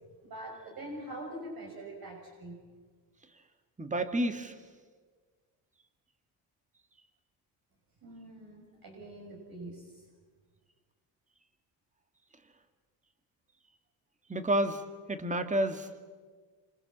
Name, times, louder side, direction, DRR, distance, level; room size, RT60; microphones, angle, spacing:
voice 1, 0.2-2.6 8.0-10.0, right 1 dB, 50° right, 0 dB, 6.5 m, -44 dB
voice 2, 3.8-4.6 14.3-14.8 15.1-16.0, right 1 dB, 15° right, 8 dB, 2.0 m, -30 dB
28.5 x 26.5 x 7.4 m, 1.5 s
cardioid pair, 125°, 44 cm